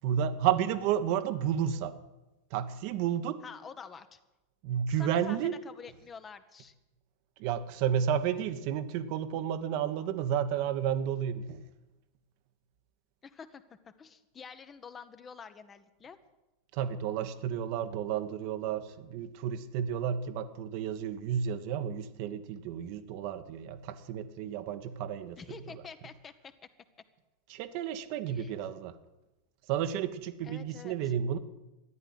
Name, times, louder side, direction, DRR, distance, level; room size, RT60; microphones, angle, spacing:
voice 1, 0.0-1.9 2.5-3.4 4.6-5.6 7.4-11.6 16.7-25.8 27.5-28.9 29.7-31.4, right 9 dB, 45° right, 9 dB, 1.1 m, -32 dB
voice 2, 3.4-4.2 5.0-5.4 5.6-6.7 13.2-13.6 14.0-16.2 25.4-26.3 28.2-28.5 30.4-31.0, left 6 dB, 20° left, 11 dB, 1.0 m, -47 dB
14.0 x 10.5 x 9.6 m, 1.0 s
figure-of-eight pair, 90°, 0 cm